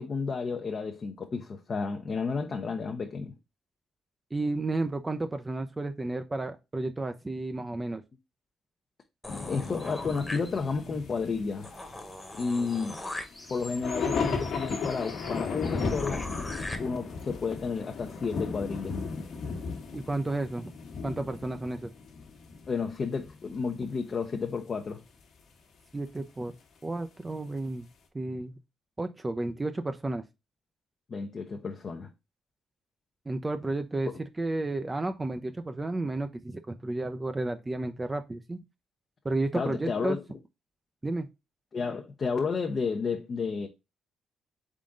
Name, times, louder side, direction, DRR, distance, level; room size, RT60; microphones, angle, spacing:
voice 1, 0.0-3.4 9.4-11.7 12.4-12.9 13.5-16.2 16.8-19.0 22.7-25.0 31.1-32.1 39.5-40.4 41.7-43.7, left 5 dB, 45° left, 0.6 m, -31 dB
voice 2, 4.3-8.0 19.9-20.7 21.0-21.9 25.9-26.5 26.8-27.9 28.1-28.6 29.0-30.2 33.3-38.6 39.2-40.2 41.0-41.3, right 2 dB, 20° right, 0.5 m, -32 dB
sound 1, 9.2-10.9 11.3-11.4 11.6-16.8, left 2 dB, 15° left, 1.1 m, -41 dB
sound 2, 9.3-22.9 23.1-23.5 24.3-24.5, left 4 dB, 70° left, 1.2 m, -36 dB
3.7 x 3.7 x 3.7 m
cardioid pair, 90°, 0 cm